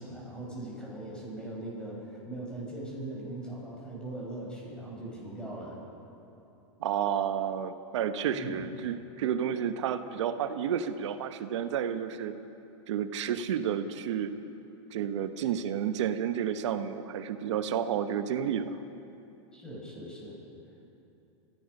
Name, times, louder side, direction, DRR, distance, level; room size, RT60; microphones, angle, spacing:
voice 1, 0.0-5.8 8.3-8.7 19.5-20.4, right 1 dB, 5° left, -4 dB, 6.0 m, -40 dB
voice 2, 6.8-12.3 12.9-14.3 14.9-18.7, right 8 dB, 70° right, 8 dB, 1.2 m, -31 dB
29.5 x 16.5 x 5.5 m, 2.8 s
supercardioid pair, 160°, 16 cm